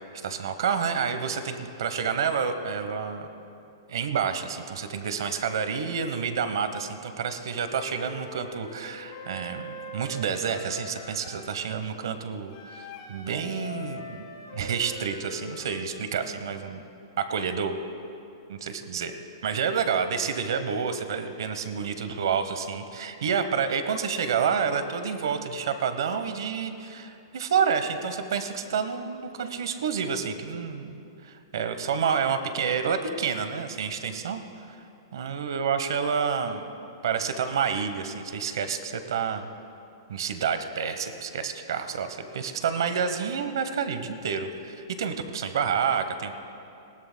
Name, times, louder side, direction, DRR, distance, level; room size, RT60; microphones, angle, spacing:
voice 1, 0.1-3.3 3.9-14.3 14.5-16.8 17.2-17.8 18.5-19.1 19.4-30.9 31.2-34.4 35.1-36.7 37.0-39.5 40.1-46.3, right 6 dB, 70° right, 9 dB, 1.0 m, -29 dB
Wind instrument woodwind instrument, 7.5-11.6 12.5-15.9, left 1 dB, 40° left, 2.3 m, -42 dB
20.0 x 18.0 x 2.2 m, 2.7 s
hypercardioid pair, 170°, 2 cm